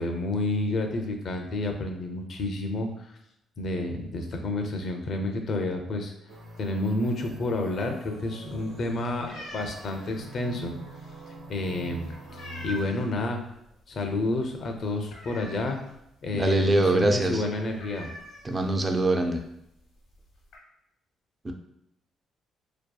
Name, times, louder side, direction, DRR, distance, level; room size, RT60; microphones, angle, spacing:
voice 1, 0.0-3.2 3.6-6.1 6.6-10.7 11.5-13.4 13.9-15.8 16.2-18.1, left 2 dB, 55° left, 4 dB, 0.4 m, -30 dB
sound 1, 6.3-12.8, right 1 dB, 75° right, 0.6 m, -44 dB
sound 2, 8.5-13.2 13.6-13.9 14.2-14.3 14.6-16.0 16.4-16.5 16.7-16.9 17.2-17.3 17.7-19.0 19.8-19.9 20.1-20.6, left 1 dB, 80° left, 0.9 m, -44 dB
voice 2, 16.3-17.4 18.4-19.4 21.4-21.5, right 2 dB, 25° right, 4 dB, 0.4 m, -23 dB
2.6 x 2.3 x 2.2 m, 0.81 s
cardioid pair, 90°, 0 cm